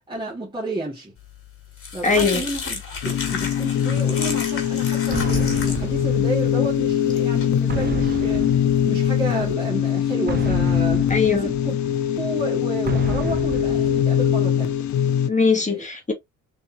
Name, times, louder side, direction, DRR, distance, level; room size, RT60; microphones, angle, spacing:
voice 1, 0.1-1.1 1.9-11.8 12.2-14.8 15.7-15.9, right 1 dB, 15° right, 2.2 m, -31 dB
sound 1, 1.3-9.5, left 5 dB, 45° left, 2.4 m, -34 dB
voice 2, 2.0-2.4 11.1-11.5 15.3-16.1, left 5 dB, 25° left, 1.7 m, -20 dB
sound 2, 3.0-15.3, left 9 dB, 70° left, 0.7 m, -22 dB
sound 3, 5.1-6.9 7.7-9.4 10.3-12.1 12.9-14.6, right 6 dB, 35° right, 0.8 m, -32 dB
4.1 x 3.5 x 2.8 m
cardioid pair, 90°, 30 cm